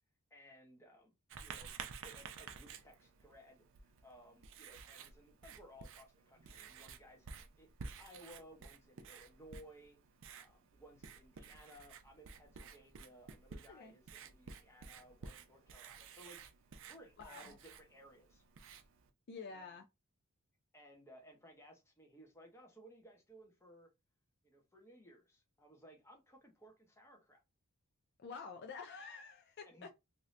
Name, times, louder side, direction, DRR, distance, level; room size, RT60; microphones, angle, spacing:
voice 1, 0.3-1.1 1.4-1.7 2.0-10.0 10.4-16.5 16.9-18.4 19.4-19.7 20.7-23.9 24.4-27.4 29.7-29.9, equal, 10° left, 0.9 m, -60 dB
Writing, 1.3-19.1, right 5 dB, 60° right, 0.5 m, -53 dB
voice 2, 17.2-17.6 19.3-19.8 28.2-29.9, left 5 dB, 45° left, 0.4 m, -49 dB
2.7 x 2.6 x 3.2 m
head